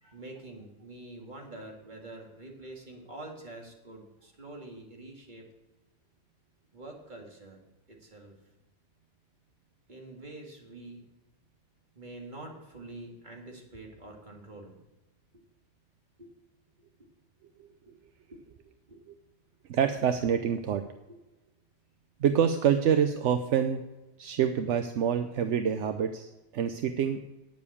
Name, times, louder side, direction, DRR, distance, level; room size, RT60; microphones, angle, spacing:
voice 1, 0.0-5.5 6.7-7.6 7.9-8.4 9.9-11.0 12.0-14.8 16.2-16.3 18.3-18.4 18.9-19.0 21.1-21.2, right 2 dB, 40° right, 0 dB, 2.3 m, -46 dB
voice 2, 19.7-20.8 22.2-23.8 24.2-27.3, right 8 dB, 75° right, 8 dB, 1.0 m, -26 dB
9.5 x 7.0 x 8.4 m, 1.0 s
omnidirectional pair, 1.2 m